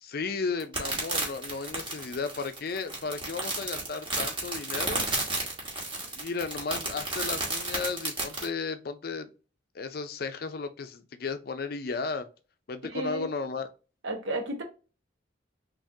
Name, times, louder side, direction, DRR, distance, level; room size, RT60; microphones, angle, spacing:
voice 1, 0.0-5.1 6.1-9.3 9.7-12.3 12.7-13.7, left 4 dB, 50° left, 0.5 m, -34 dB
sound 1, 0.6-8.5, right 2 dB, 25° right, 1.2 m, -32 dB
voice 2, 12.9-13.3 14.0-14.6, right 1 dB, 80° right, 1.1 m, -32 dB
3.6 x 3.3 x 2.7 m
head